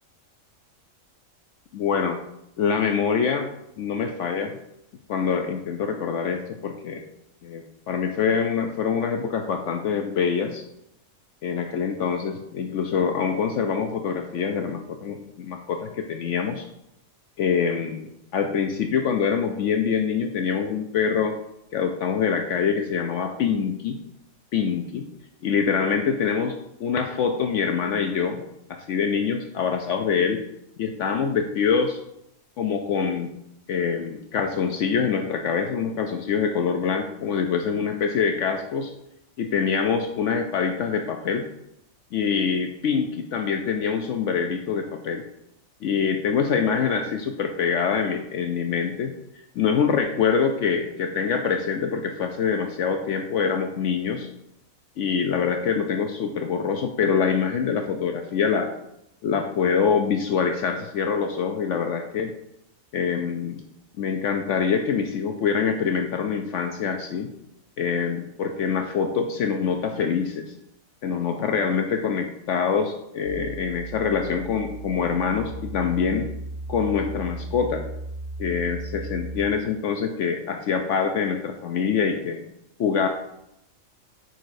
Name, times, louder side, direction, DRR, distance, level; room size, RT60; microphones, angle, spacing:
voice 1, 1.7-2.2 2.6-3.5 3.8-4.5 5.1-7.0 7.4-10.6 11.4-16.7 17.4-21.3 21.7-24.0 24.5-25.0 25.4-28.4 28.7-30.4 30.8-32.0 32.6-33.3 33.7-38.9 39.4-41.5 42.1-45.2 45.8-49.1 49.6-54.3 55.0-58.7 59.2-62.3 62.9-63.6 64.0-67.3 67.8-70.5 71.0-76.3 76.7-77.9 78.4-82.4 82.8-83.1, left 6 dB, 70° left, 5 dB, 0.9 m, -25 dB
sound 1, 73.2-79.4, right 3 dB, 45° right, 1.3 m, -36 dB
8.0 x 6.3 x 2.6 m, 0.80 s
omnidirectional pair, 1.4 m